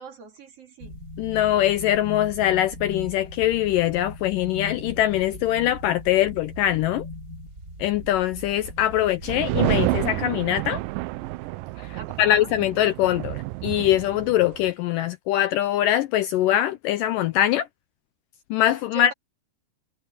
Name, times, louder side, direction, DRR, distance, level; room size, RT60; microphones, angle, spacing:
voice 1, 0.0-1.0 11.9-12.5 18.9-19.1, right 4 dB, 45° right, 3.0 m, -41 dB
sound 1, 0.8-9.7, left 2 dB, 20° right, 3.7 m, -39 dB
voice 2, 1.2-7.1 7.8-10.8 11.8-17.7 18.5-19.1, left 12 dB, 80° left, 2.0 m, -23 dB
sound 2, 9.2-14.7, right 19 dB, 80° right, 2.0 m, -29 dB
omnidirectional pair, 4.4 m